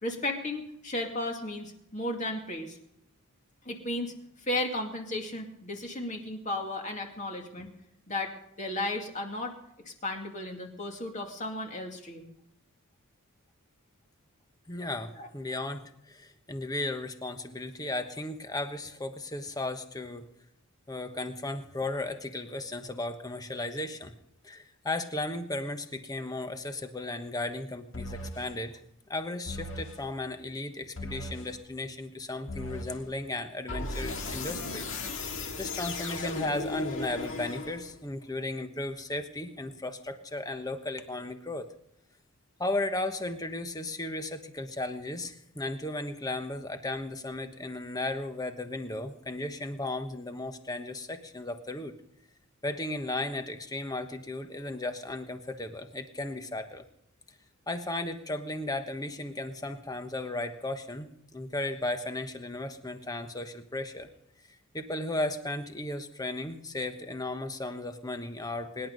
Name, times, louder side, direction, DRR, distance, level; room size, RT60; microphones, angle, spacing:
voice 1, 0.0-2.8 3.7-4.1 4.4-7.7 8.1-8.3 8.6-9.5 9.9-12.3 15.1-15.3, left 1 dB, 35° left, 2 dB, 2.4 m, -34 dB
voice 2, 14.7-20.2 20.9-24.1 24.4-28.8 29.1-41.7 42.6-51.9 52.6-56.8 57.7-64.1 64.7-68.9, left 2 dB, 15° left, 8 dB, 1.2 m, -35 dB
sound 1, 27.9-28.5 29.5-30.0 31.0-31.5 32.5-33.0 33.7-38.1, left 2 dB, 60° left, 2.1 m, -36 dB
24.5 x 11.0 x 5.3 m, 0.77 s
head